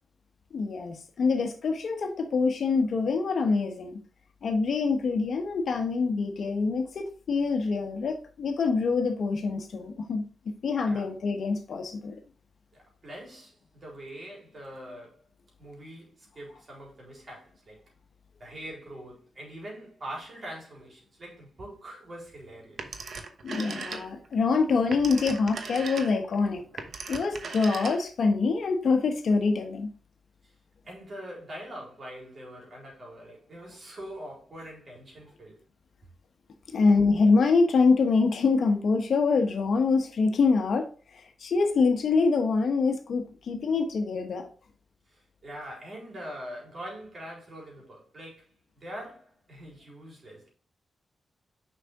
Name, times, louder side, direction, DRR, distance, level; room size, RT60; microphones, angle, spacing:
voice 1, 0.5-4.0 4.4-10.2 10.6-12.2 23.4-26.6 27.1-29.9 36.7-44.5, left 4 dB, 65° left, 1.1 m, -25 dB
voice 2, 12.7-15.2 15.6-17.8 18.4-23.0 30.8-35.6 45.1-50.5, equal, 45° right, 4.1 m, -43 dB
Telephone, 22.8-24.3 24.7-28.3, right 4 dB, 65° right, 1.0 m, -38 dB
6.6 x 5.7 x 3.6 m
cardioid pair, 90°, 0 cm